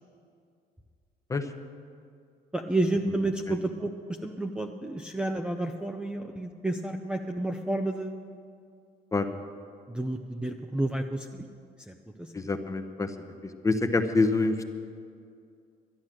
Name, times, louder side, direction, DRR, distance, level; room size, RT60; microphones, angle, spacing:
voice 1, 2.5-8.2 9.9-11.4 11.9-12.3, right 2 dB, 5° right, 4 dB, 0.6 m, -31 dB
voice 2, 12.3-13.1 13.6-14.6, left 3 dB, 20° left, 7 dB, 0.9 m, -25 dB
12.0 x 10.5 x 7.5 m, 2.4 s
cardioid pair, 110°, 17 cm